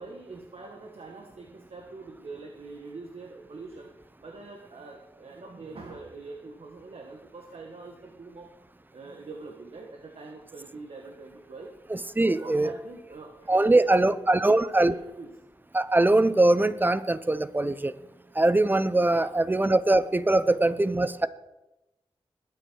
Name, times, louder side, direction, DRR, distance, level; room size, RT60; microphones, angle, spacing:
voice 1, 0.0-3.9 4.2-8.5 8.9-11.7 12.2-15.3 19.1-19.3 20.5-20.8, right 3 dB, 65° right, 2 dB, 1.7 m, -44 dB
voice 2, 11.9-12.7 13.5-15.0 15.7-17.9 18.4-21.3, right 2 dB, 20° right, 15 dB, 0.7 m, -22 dB
20.5 x 9.2 x 4.8 m, 0.97 s
wide cardioid pair, 80°, 11 cm